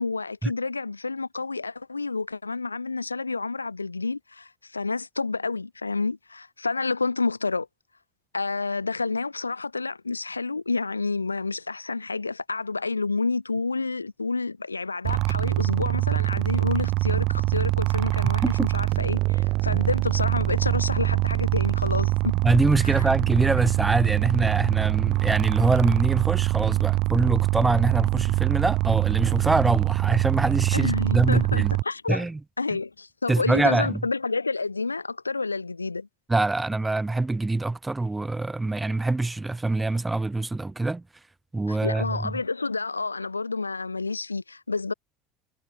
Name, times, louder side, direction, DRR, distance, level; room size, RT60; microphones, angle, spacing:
voice 1, 0.0-7.7 8.3-22.3 22.8-23.1 30.7-32.2 32.6-36.1 41.7-44.9, left 3 dB, 85° left, 1.5 m, -29 dB
sound 1, 15.0-31.8, right 21 dB, 55° right, 0.4 m, -24 dB
voice 2, 22.4-31.7 32.1-32.4 33.3-34.0 36.3-41.0 41.5-42.3, right 2 dB, 10° right, 2.1 m, -24 dB
figure-of-eight pair, 65°, 0 cm